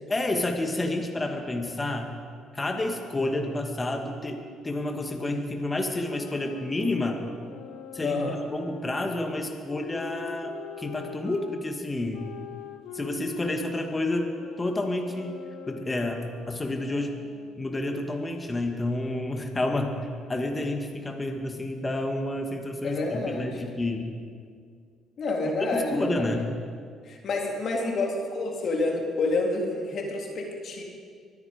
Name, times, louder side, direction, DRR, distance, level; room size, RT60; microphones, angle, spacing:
voice 1, 0.1-2.1 2.5-7.2 7.9-12.3 12.9-14.3 14.6-15.4 15.7-16.2 16.5-17.2 17.6-19.9 20.3-24.1 25.7-26.5, left 2 dB, 20° left, 3 dB, 2.0 m, -29 dB
sound 1, 5.9-11.5 12.1-17.7, left 7 dB, 85° left, 1.3 m, -43 dB
voice 2, 8.0-8.4 22.8-23.5 25.2-26.4 27.0-30.8, left 2 dB, 55° left, 1 dB, 3.1 m, -28 dB
24.0 x 9.7 x 5.2 m, 2.1 s
cardioid pair, 80°, 0 cm